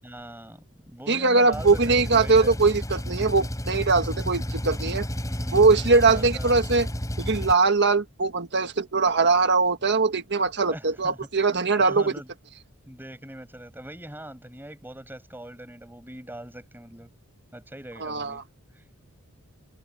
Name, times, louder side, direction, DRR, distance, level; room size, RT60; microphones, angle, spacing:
voice 1, 0.0-2.6 3.4-3.5 5.3-6.5 10.7-11.4 11.8-12.3 12.9-17.1 17.5-18.4 18.7-18.9, right 1 dB, 10° right, 6.7 m, -42 dB
voice 2, 1.1-5.1 5.5-6.9 7.2-12.1 18.0-18.4, right 4 dB, 50° right, 1.6 m, -21 dB
Engine, 1.5-7.5, equal, 15° left, 6.4 m, -31 dB
head